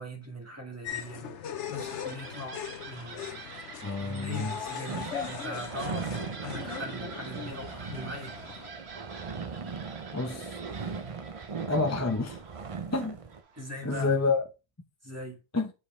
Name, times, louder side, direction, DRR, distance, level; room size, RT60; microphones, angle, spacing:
voice 1, 0.0-3.5 4.0-8.3 13.6-14.1 15.0-15.4, left 1 dB, 15° right, 1.8 m, -40 dB
sound 1, 0.8-8.7, left 8 dB, 85° left, 1.1 m, -40 dB
sound 2, 1.4-13.9, right 5 dB, 65° right, 1.3 m, -47 dB
voice 2, 3.8-4.6 10.1-10.6 11.7-12.4 12.9-13.2 13.8-14.4 15.5-15.7, left 3 dB, 15° left, 0.8 m, -28 dB
sound 3, 4.9-13.4, right 5 dB, 35° right, 0.6 m, -39 dB
7.5 x 5.0 x 3.2 m
omnidirectional pair, 1.2 m